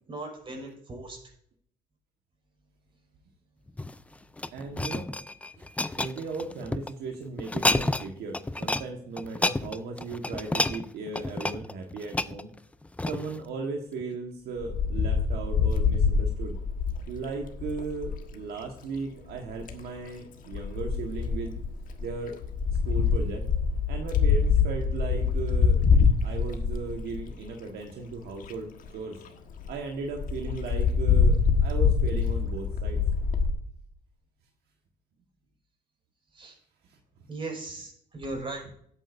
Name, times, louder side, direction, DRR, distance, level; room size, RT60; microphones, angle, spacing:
voice 1, 0.1-1.2 36.3-36.6 37.3-38.7, right 2 dB, 30° right, 0 dB, 5.4 m, -38 dB
sound 1, 3.7-6.9 7.4-8.1 8.3-8.9 9.2-13.4 14.0-14.1, left 2 dB, 10° left, 0.4 m, -30 dB
voice 2, 4.5-5.1 5.6-5.7 6.0-12.5 13.1-16.6 17.1-21.5 22.0-22.4 22.8-23.5 23.9-25.8 26.2-29.2 29.7-33.0 36.9-37.2, right 4 dB, 70° right, 2 dB, 1.5 m, -37 dB
Wind, 14.6-18.2 19.3-19.8 20.5-27.5 28.1-28.2 28.4-28.5 28.9-29.0 29.2-29.3 29.6-29.7 30.2-33.5, left 5 dB, 55° left, 1.5 m, -25 dB
16.5 x 8.9 x 2.6 m, 0.67 s
cardioid pair, 110°, 17 cm